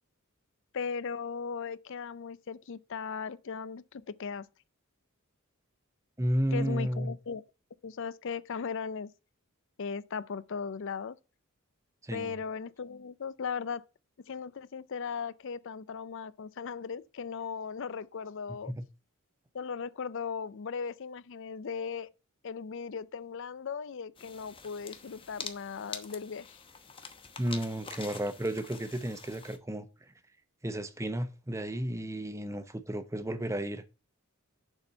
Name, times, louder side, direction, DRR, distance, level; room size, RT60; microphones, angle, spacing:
voice 1, 0.7-4.5 6.5-7.4 7.8-9.1 9.8-11.2 12.1-13.8 14.3-18.7 19.5-22.1 22.4-26.6, left 6 dB, 60° left, 0.5 m, -37 dB
voice 2, 6.2-7.1 12.0-12.4 18.7-18.8 27.4-29.9 30.6-33.8, right 1 dB, 15° right, 0.8 m, -32 dB
sound 1, 24.2-29.6, left 5 dB, 25° left, 1.0 m, -46 dB
7.0 x 4.4 x 6.5 m
head